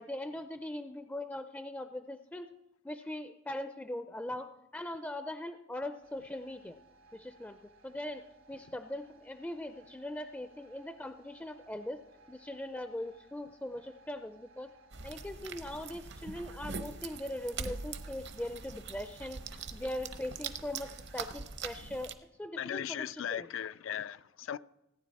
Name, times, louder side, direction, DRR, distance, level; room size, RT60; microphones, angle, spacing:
voice 1, 0.0-2.5 2.8-6.8 7.1-7.6 7.8-12.0 12.3-14.7 15.0-22.1 22.4-23.5, left 1 dB, 10° left, 0.4 m, -40 dB
sound 1, 6.0-21.1, right 2 dB, 80° right, 1.5 m, -62 dB
sound 2, 14.9-22.1, right 5 dB, 60° right, 0.8 m, -43 dB
voice 2, 22.6-24.6, left 9 dB, 75° left, 0.4 m, -37 dB
17.5 x 9.8 x 4.1 m
head